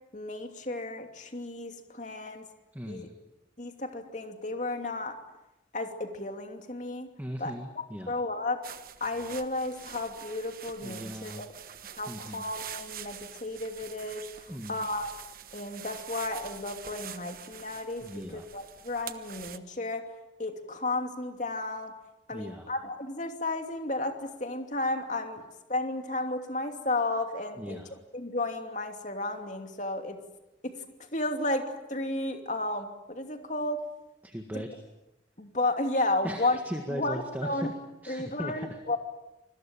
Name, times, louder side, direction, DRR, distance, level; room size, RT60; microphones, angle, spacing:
voice 1, 0.1-2.5 2.9-3.1 3.6-5.1 5.7-7.1 7.4-7.5 8.1-8.6 9.0-11.5 12.0-15.1 15.5-20.1 20.4-21.9 22.3-25.4 25.7-27.8 28.1-30.2 30.6-30.7 31.1-33.8 34.5-34.6 35.4-36.6 36.9-37.7 38.1-39.0, left 2 dB, 40° left, 5 dB, 2.8 m, -33 dB
voice 2, 2.7-3.1 7.2-8.1 10.8-11.4 12.1-12.4 14.5-14.8 18.0-18.5 22.3-22.7 27.6-28.0 34.2-34.7 36.2-37.7 38.0-38.8, equal, 10° right, 4 dB, 1.8 m, -38 dB
sound 1, 8.6-19.6, right 9 dB, 50° right, 1.2 m, -45 dB
27.0 x 21.0 x 9.0 m, 0.95 s
head